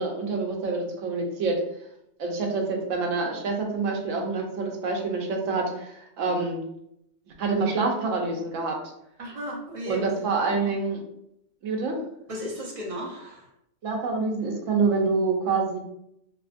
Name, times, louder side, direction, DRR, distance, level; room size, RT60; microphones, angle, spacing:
voice 1, 0.0-1.6 2.2-6.6 7.4-8.8 9.9-11.0 11.6-12.0 13.8-15.8, right 4 dB, 80° right, 1 dB, 1.0 m, -26 dB
voice 2, 9.2-10.1 10.5-10.7 12.3-13.5, equal, 40° right, -2 dB, 0.5 m, -35 dB
2.9 x 2.4 x 2.4 m, 0.78 s
omnidirectional pair, 1.3 m